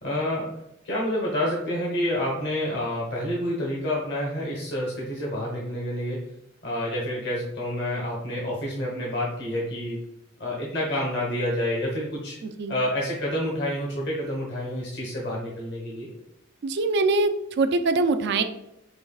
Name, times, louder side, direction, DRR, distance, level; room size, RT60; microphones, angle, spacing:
voice 1, 0.0-6.3 6.6-10.0 10.4-12.4 12.7-16.1, left 1 dB, 55° left, -3 dB, 1.0 m, -28 dB
voice 2, 12.4-12.8 16.6-18.4, right 3 dB, 50° right, 9 dB, 0.3 m, -23 dB
5.9 x 3.1 x 2.3 m, 0.87 s
head